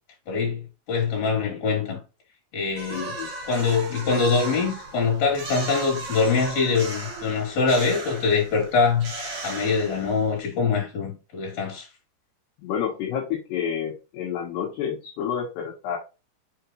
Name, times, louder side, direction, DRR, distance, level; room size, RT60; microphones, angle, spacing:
voice 1, 0.3-0.6 0.9-2.0 2.5-3.2 3.5-9.1 9.4-11.9, left 5 dB, 40° left, 3.8 m, -23 dB
sound 1, 2.7-10.4, right 3 dB, 45° right, 2.6 m, -36 dB
voice 2, 2.9-3.3 12.6-16.0, left 8 dB, 70° left, 3.1 m, -29 dB
7.1 x 4.6 x 3.0 m
omnidirectional pair, 5.4 m